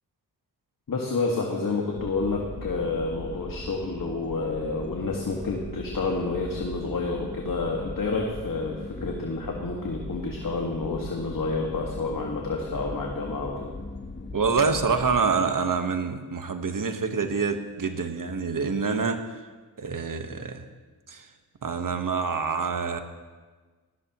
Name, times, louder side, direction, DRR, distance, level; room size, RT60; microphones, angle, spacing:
voice 1, 0.9-8.7 9.0-13.7, left 3 dB, 55° left, -1 dB, 2.0 m, -29 dB
sound 1, 1.9-15.3, left 2 dB, 30° left, 1.3 m, -39 dB
voice 2, 14.3-19.4 19.8-20.6 21.1-21.3 21.6-23.0, right 5 dB, 55° right, 7 dB, 1.3 m, -26 dB
18.5 x 17.5 x 3.1 m, 1.4 s
cardioid pair, 65°, 39 cm